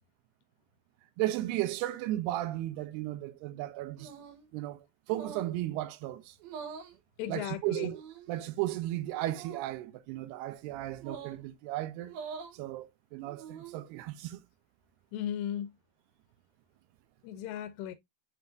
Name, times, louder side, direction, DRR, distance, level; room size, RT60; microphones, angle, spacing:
voice 1, 1.2-4.1 4.5-6.3 7.3-8.0 8.3-12.1 12.5-14.4, right 15 dB, 85° right, 2.7 m, -35 dB
sound 1, 4.0-4.5 5.1-5.6 6.4-7.0 7.9-8.4 9.3-9.6 11.0-11.4 12.0-12.6 13.3-13.8, right 6 dB, 70° right, 2.9 m, -44 dB
voice 2, 7.2-8.0 15.1-15.8 17.2-17.9, left 10 dB, 90° left, 2.8 m, -36 dB
7.4 x 5.9 x 2.6 m
omnidirectional pair, 4.8 m